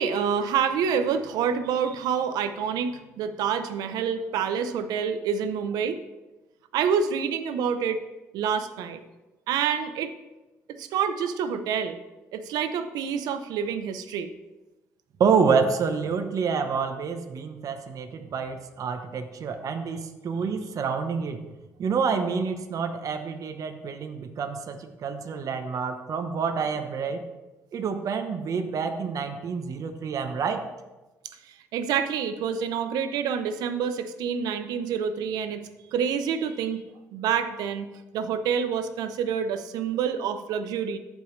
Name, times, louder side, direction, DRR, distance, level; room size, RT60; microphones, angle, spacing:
voice 1, 0.0-6.0 6.7-8.0 8.3-9.0 9.5-10.1 10.8-12.0 12.3-14.3 31.5-35.6 35.9-36.8 37.1-37.9 38.1-41.0, right 7 dB, 85° right, 10 dB, 0.7 m, -27 dB
voice 2, 15.2-21.4 21.8-27.2 27.7-30.6, right 5 dB, 60° right, 6 dB, 0.9 m, -28 dB
14.5 x 5.4 x 3.2 m, 1.1 s
supercardioid pair, 70°, 7 cm